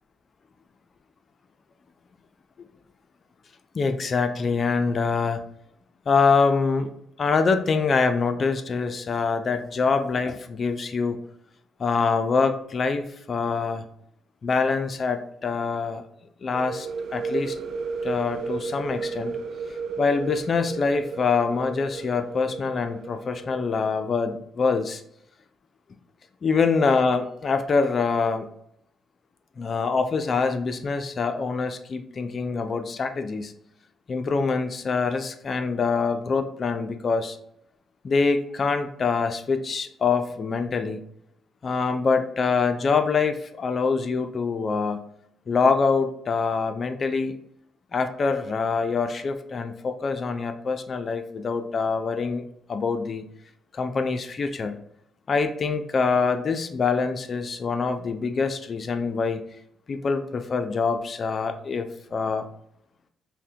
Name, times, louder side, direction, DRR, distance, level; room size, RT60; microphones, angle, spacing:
voice 1, 3.7-5.4 6.1-6.9 7.2-11.2 11.8-13.8 14.4-16.0 16.4-16.9 17.1-17.6 18.0-19.4 20.0-25.0 26.4-28.5 29.6-33.5 34.1-37.4 38.0-41.0 41.6-45.0 45.5-47.4 47.9-52.4 52.7-53.2 53.7-54.8 55.3-59.4 59.9-62.5, left 4 dB, 45° left, 7 dB, 0.4 m, -25 dB
sound 1, 16.5-24.1, right 5 dB, 65° right, 0.3 m, -34 dB
5.7 x 2.1 x 2.7 m, 0.72 s
cardioid pair, 90°, 0 cm